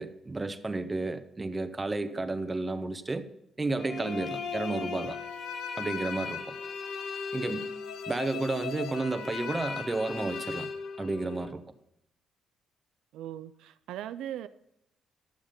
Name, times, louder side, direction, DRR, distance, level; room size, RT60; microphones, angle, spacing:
voice 1, 0.0-3.3 3.6-5.2 5.8-6.5 7.3-7.7 8.1-10.7 11.0-11.6, right 2 dB, 20° right, 9 dB, 1.0 m, -32 dB
sound 1, 3.8-11.5, left 5 dB, 75° left, 0.9 m, -37 dB
voice 2, 13.1-14.5, right 11 dB, 85° right, 13 dB, 0.4 m, -40 dB
11.5 x 7.2 x 5.2 m, 0.80 s
cardioid pair, 90°, 0 cm